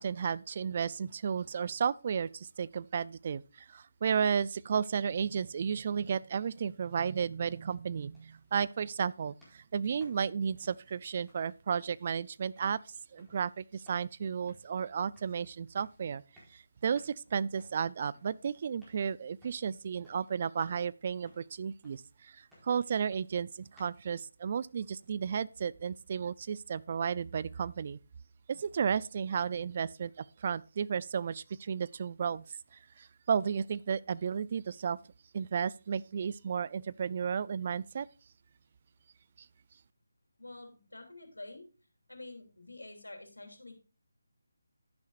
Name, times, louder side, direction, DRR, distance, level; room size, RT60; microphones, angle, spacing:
voice 1, 0.0-16.2 16.5-28.0 28.5-35.0 35.3-38.1, right 7 dB, 40° right, 0.4 m, -33 dB
sound 1, 6.4-24.1, equal, ahead, 4.5 m, -65 dB
voice 2, 40.4-41.7 42.1-43.7, left 2 dB, 85° left, 3.1 m, -48 dB
10.5 x 10.5 x 2.5 m
figure-of-eight pair, 155°, 0 cm